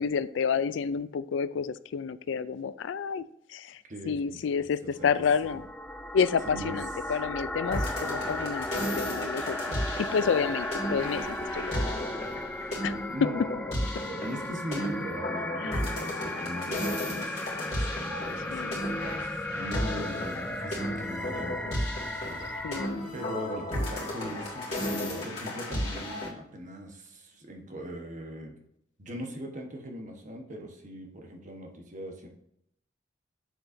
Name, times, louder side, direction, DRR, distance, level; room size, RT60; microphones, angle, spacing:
voice 1, 0.0-3.2 3.5-5.6 6.1-9.6 10.0-11.7 12.8-13.3 15.6-15.8 18.5-19.0 22.6-23.1, left 6 dB, 80° left, 16 dB, 0.4 m, -30 dB
voice 2, 3.9-5.1 5.4-5.6 6.4-6.8 7.0-7.2 12.5-12.8 13.1-22.7 23.1-28.5 29.0-32.3, equal, 40° right, 2 dB, 1.2 m, -40 dB
sound 1, 5.0-22.9, left 1 dB, 5° left, 0.3 m, -36 dB
sound 2, 7.6-26.3, left 1 dB, 35° left, 2.4 m, -34 dB
7.5 x 7.0 x 2.7 m, 0.75 s
head